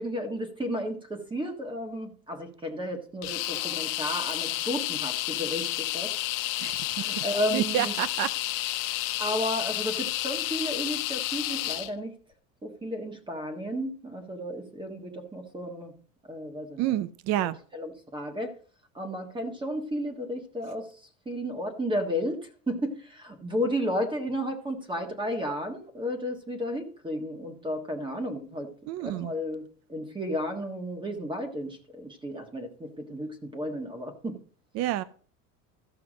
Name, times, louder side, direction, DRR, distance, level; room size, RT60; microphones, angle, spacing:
voice 1, 0.0-6.1 7.0-7.9 8.9-12.1 12.6-15.9 16.3-16.9 17.4-17.5 17.7-18.5 18.9-20.9 21.2-28.7 29.0-29.6 29.9-34.4, equal, 10° right, 1.4 m, -33 dB
sound 1, 3.2-11.9, left 16 dB, 85° left, 1.0 m, -31 dB
voice 2, 6.6-7.3 7.5-8.8 16.8-17.6 28.9-29.3 34.8-35.0, right 14 dB, 45° right, 0.5 m, -30 dB
14.0 x 5.8 x 5.0 m
supercardioid pair, 130°, 39 cm